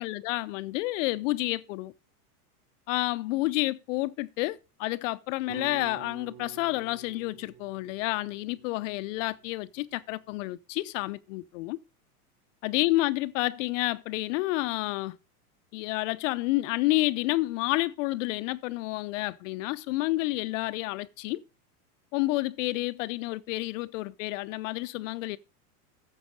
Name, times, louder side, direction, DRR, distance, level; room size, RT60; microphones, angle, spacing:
voice 1, 0.0-1.9 2.9-11.8 12.6-15.2 15.7-21.4 22.1-25.4, left 20 dB, 55° left, 0.7 m, -29 dB
sound 1, 5.5-9.8, right 9 dB, 30° right, 0.7 m, -48 dB
9.5 x 7.0 x 5.0 m
hypercardioid pair, 115°, 45 cm